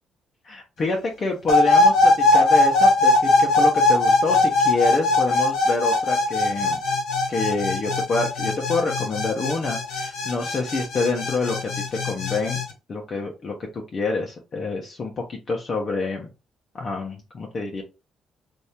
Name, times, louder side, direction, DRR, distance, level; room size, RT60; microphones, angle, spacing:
voice 1, 0.4-6.8 7.3-12.6 12.9-16.3 16.7-17.8, left 3 dB, 45° left, 0 dB, 0.7 m, -27 dB
sound 1, 1.5-12.6, left 2 dB, 80° left, 1.3 m, -20 dB
2.8 x 2.7 x 3.4 m, 0.28 s
cardioid pair, 90°, 0 cm